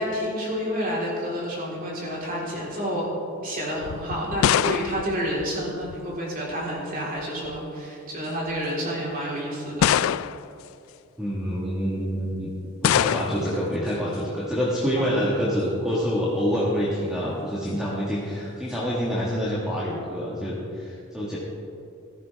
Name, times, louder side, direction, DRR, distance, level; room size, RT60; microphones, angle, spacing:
voice 1, 0.0-3.1 3.4-10.0 14.9-15.2, equal, 45° right, -4 dB, 3.8 m, -29 dB
sound 1, 3.8-6.2 7.2-7.7 8.5-8.6 9.8-10.6 12.8-13.6, left 9 dB, 70° left, 0.3 m, -24 dB
voice 2, 11.2-21.4, equal, 5° right, -7 dB, 1.7 m, -27 dB
16.0 x 13.5 x 3.5 m, 2.6 s
head